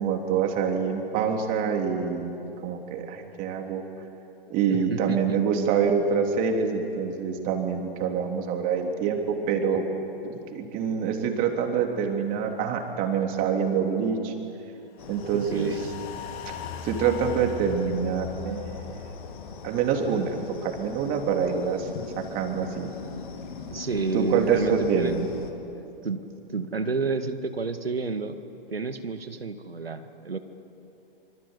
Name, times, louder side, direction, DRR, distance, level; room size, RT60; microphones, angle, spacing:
voice 1, 0.0-3.8 4.5-9.8 10.5-14.3 15.1-15.8 16.4-16.6 16.8-18.8 19.6-22.9 24.1-25.3, right 6 dB, 30° right, 3 dB, 3.3 m, -26 dB
voice 2, 4.7-5.4 15.3-15.9 23.7-25.2 26.0-26.2 26.5-28.4 28.7-30.4, right 4 dB, 90° right, 9 dB, 1.9 m, -30 dB
sound 1, 15.0-25.5, left 5 dB, 60° left, 3.1 m, -42 dB
sound 2, 15.1-21.5 21.8-21.9, left 7 dB, 30° left, 2.1 m, -40 dB
26.5 x 25.0 x 8.2 m, 2.9 s
hypercardioid pair, 130°, 29 cm